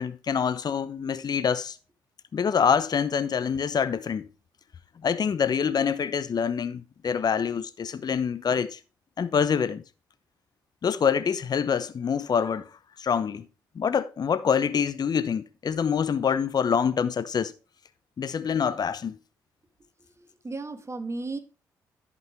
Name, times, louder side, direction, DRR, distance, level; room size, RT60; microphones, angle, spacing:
voice 1, 0.0-1.8 2.3-4.3 5.0-8.8 9.2-9.8 10.8-12.7 13.0-13.5 13.8-17.5 18.2-19.2, left 7 dB, 45° left, 0.9 m, -26 dB
voice 2, 20.2-21.4, right 3 dB, 30° right, 1.6 m, -35 dB
11.0 x 5.4 x 4.5 m
hypercardioid pair, 45°, 9 cm